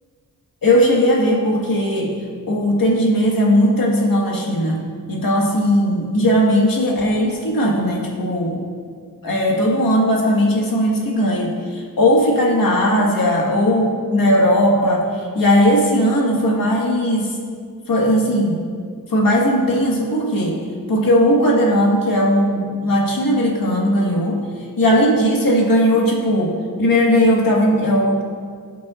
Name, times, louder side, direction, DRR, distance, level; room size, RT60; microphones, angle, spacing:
voice 1, 0.6-2.2 2.5-4.8 5.1-8.6 9.2-17.4 17.9-18.6 19.1-20.6 20.9-24.4 24.8-28.2, equal, 75° left, -2 dB, 1.7 m, -17 dB
17.5 x 5.9 x 2.5 m, 2.1 s
wide cardioid pair, 110°, 34 cm